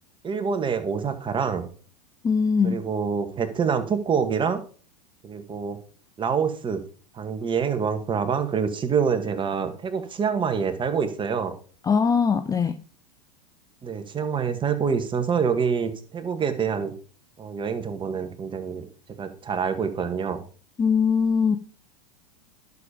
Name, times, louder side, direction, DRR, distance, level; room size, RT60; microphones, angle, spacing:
voice 1, 0.2-1.7 2.6-4.6 5.2-5.8 6.2-6.8 7.1-11.5 13.8-16.9 17.4-18.9 19.2-20.4, right 6 dB, 25° right, 1.7 m, -26 dB
voice 2, 2.2-2.8 11.8-12.8 20.8-21.6, left 6 dB, 15° left, 0.5 m, -21 dB
10.5 x 6.9 x 5.1 m
hypercardioid pair, 95°, 21 cm